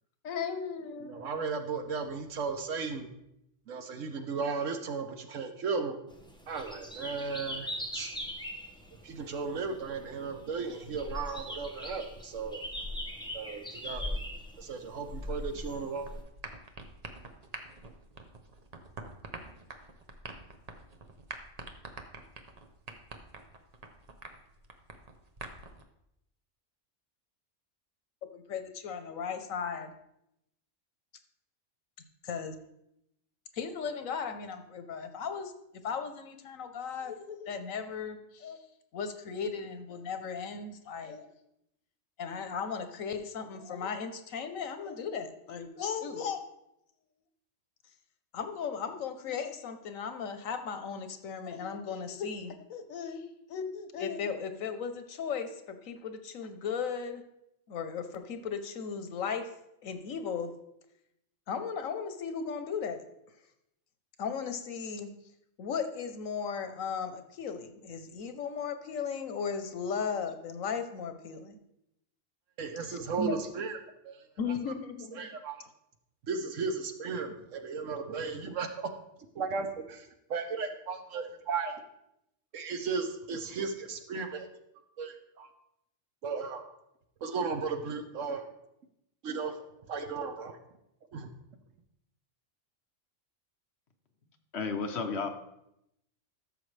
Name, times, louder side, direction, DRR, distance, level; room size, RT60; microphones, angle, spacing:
voice 1, 0.2-1.1 28.2-29.9 32.2-32.6 33.5-35.5 35.8-38.6 38.9-41.3 42.2-46.4 48.3-57.2 57.7-59.5 59.8-60.5 61.5-63.0 64.2-65.1 65.6-71.6 72.8-73.4 74.4-75.3, left 6 dB, 85° left, 8 dB, 1.3 m, -36 dB
voice 2, 1.0-3.1 3.7-6.0 6.5-8.1 9.0-12.6 13.3-14.2 14.6-16.1 72.6-73.8 74.0-74.2 75.1-75.6 76.3-78.9 79.3-81.7 82.5-84.5 85.0-85.5 86.2-86.6 87.2-88.4 89.2-89.6 89.9-90.6 91.1-91.3, right 5 dB, 75° right, 6 dB, 1.3 m, -35 dB
sound 1, 6.1-16.2, left 1 dB, 5° left, 0.7 m, -41 dB
sound 2, 16.0-25.8, right 3 dB, 35° right, 0.8 m, -46 dB
voice 3, 94.5-95.3, left 4 dB, 60° left, 6 dB, 1.1 m, -32 dB
13.0 x 6.7 x 3.3 m, 0.82 s
omnidirectional pair, 1.3 m